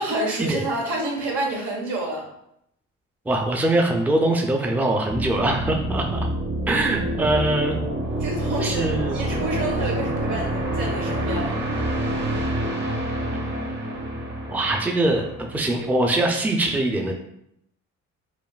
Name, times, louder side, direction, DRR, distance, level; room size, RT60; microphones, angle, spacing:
voice 1, 0.0-2.2 8.2-11.6, right 2 dB, 80° right, -2 dB, 1.3 m, -28 dB
voice 2, 3.3-6.3 6.7-7.8 8.6-9.5 14.5-17.1, right 2 dB, 5° right, 2 dB, 0.5 m, -23 dB
sound 1, 5.1-15.8, right 1 dB, 35° right, 1.0 m, -27 dB
5.1 x 2.5 x 2.4 m, 0.76 s
cardioid pair, 90°, 30 cm